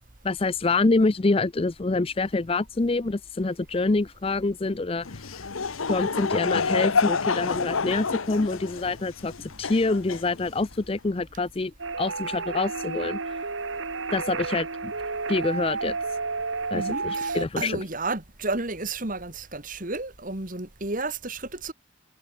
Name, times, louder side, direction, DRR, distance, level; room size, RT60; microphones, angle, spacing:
voice 1, 0.2-5.2 5.9-13.5 14.1-14.9 15.3-16.0 16.7-17.8, left 3 dB, 30° left, 0.5 m, -26 dB
Laughter / Crowd, 5.0-10.8, left 5 dB, 90° left, 1.1 m, -28 dB
sound 1, 11.8-17.5, right 4 dB, 70° right, 1.8 m, -31 dB
voice 2, 16.7-21.7, right 3 dB, 40° right, 2.3 m, -32 dB
head